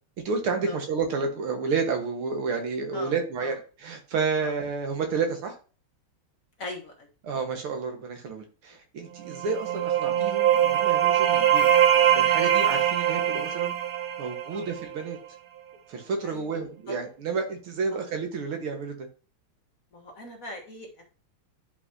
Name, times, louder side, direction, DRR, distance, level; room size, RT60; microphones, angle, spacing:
voice 1, 0.3-5.5 7.2-11.7 11.9-13.7 14.2-15.2 15.9-19.1, right 5 dB, 80° right, 4 dB, 2.3 m, -30 dB
voice 2, 2.9-3.5 4.4-4.5 6.6-7.1 14.5-14.6 16.2-16.5 16.9-17.0 19.9-21.0, left 2 dB, 45° left, 1 dB, 1.7 m, -40 dB
sound 1, 9.3-15.0, right 10 dB, 55° right, 1.1 m, -22 dB
10.5 x 5.3 x 2.8 m, 0.37 s
omnidirectional pair, 2.4 m